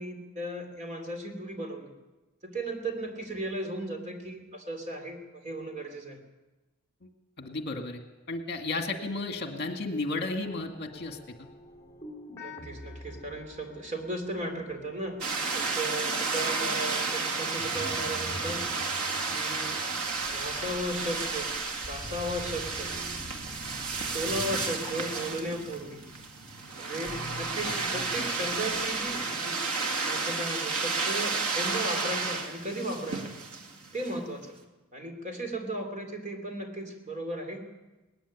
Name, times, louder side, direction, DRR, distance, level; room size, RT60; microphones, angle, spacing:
voice 1, 0.0-1.9 2.4-6.2 12.4-15.2 15.5-18.6 19.3-19.8 20.3-21.5 21.9-22.9 24.1-26.0 26.8-29.6 30.0-33.3 33.9-34.6 34.9-37.6, right 1 dB, 35° right, 5 dB, 3.6 m, -36 dB
voice 2, 7.4-8.0 8.3-11.4 27.6-27.7 28.1-28.2, left 2 dB, 50° left, 5 dB, 2.0 m, -33 dB
sound 1, 10.4-16.9 17.5-29.3, left 1 dB, 15° left, 3.3 m, -46 dB
sound 2, 15.2-34.2, right 4 dB, 90° right, 2.5 m, -32 dB
19.5 x 15.5 x 10.0 m, 1.1 s
head